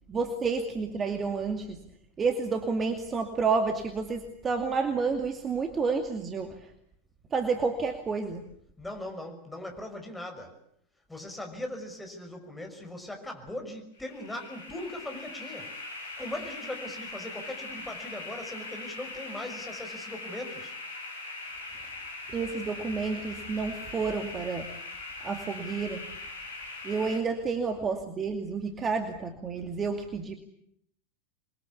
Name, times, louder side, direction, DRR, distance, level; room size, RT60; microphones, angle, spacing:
voice 1, 0.1-1.9 2.2-6.7 7.3-8.4 22.3-24.7 25.2-26.1 26.8-30.4, right 4 dB, 20° right, 6 dB, 2.4 m, -30 dB
voice 2, 8.8-10.6 11.1-20.7, left 1 dB, 5° left, 4 dB, 5.9 m, -40 dB
sound 1, 14.0-27.2, left 3 dB, 65° left, 6.8 m, -41 dB
27.5 x 22.5 x 8.4 m, 0.71 s
figure-of-eight pair, 90°, 0 cm